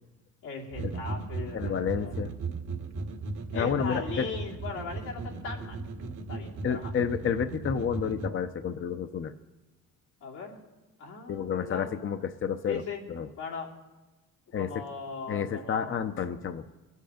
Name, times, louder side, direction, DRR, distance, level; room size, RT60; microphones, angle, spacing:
voice 1, 0.4-2.2 3.5-5.8 6.3-6.9 10.2-10.6 11.0-11.9 12.7-13.0 13.4-13.7 14.5-16.1, left 4 dB, 90° left, -3 dB, 2.9 m, -38 dB
sound 1, 0.7-8.3, right 3 dB, 75° right, 1.7 m, -36 dB
voice 2, 1.5-2.3 3.5-4.3 6.6-9.3 11.3-12.8 13.1-13.3 14.5-14.8 15.3-16.7, left 7 dB, 40° left, 9 dB, 0.7 m, -30 dB
22.0 x 8.2 x 5.0 m, 1.1 s
cardioid pair, 90°, 30 cm